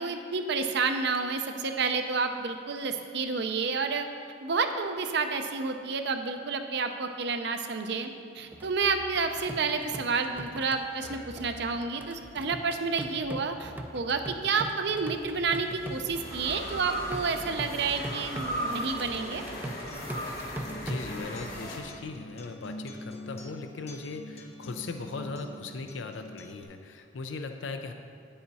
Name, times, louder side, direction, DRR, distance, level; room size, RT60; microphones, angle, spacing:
voice 1, 0.0-4.1 4.4-8.1 8.3-19.4, right 4 dB, 65° right, 6 dB, 0.6 m, -30 dB
sound 1, 8.5-21.2, right 1 dB, 10° right, 0.4 m, -42 dB
sound 2, 10.9-12.4 14.3-21.8, equal, 55° left, 1.3 m, -38 dB
Acoustic guitar, 18.6-26.6, left 1 dB, 35° left, 0.7 m, -45 dB
voice 2, 20.8-27.9, left 3 dB, 80° left, 7 dB, 0.5 m, -38 dB
9.5 x 7.1 x 4.1 m, 2.3 s
head